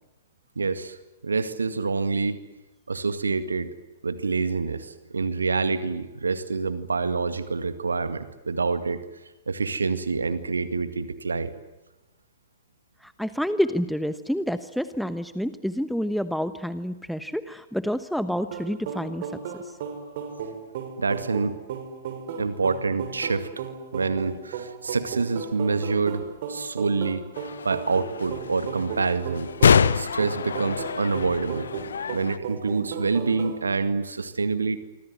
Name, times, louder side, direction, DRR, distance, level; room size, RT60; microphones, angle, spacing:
voice 1, 0.6-1.0 1.2-2.4 2.9-3.7 4.0-9.0 9.5-11.5 21.0-21.6 22.4-23.5 23.9-27.2 27.6-31.7 32.1-34.8, right 4 dB, 75° right, 11 dB, 2.0 m, -27 dB
voice 2, 13.0-19.3 19.6-19.7, equal, ahead, 12 dB, 1.0 m, -28 dB
sound 1, 18.5-33.6, right 7 dB, 50° right, 6.4 m, -35 dB
sound 2, 27.4-32.4, left 6 dB, 70° left, 1.0 m, -26 dB
27.0 x 25.0 x 7.9 m, 1.1 s
figure-of-eight pair, 110°, 0 cm